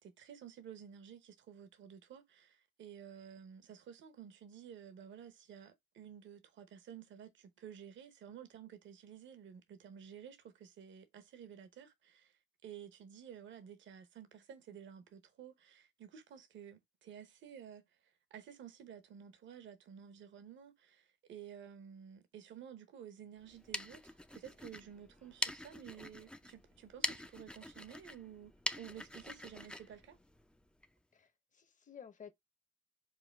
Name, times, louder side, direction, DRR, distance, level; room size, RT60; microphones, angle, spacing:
voice 1, 0.0-30.2, right 8 dB, 70° right, 1.0 m, -53 dB
sound 1, 23.4-30.9, left 1 dB, 5° left, 0.4 m, -44 dB
voice 2, 31.1-32.3, left 7 dB, 40° left, 0.9 m, -54 dB
5.0 x 2.2 x 3.4 m
cardioid pair, 90°, 20 cm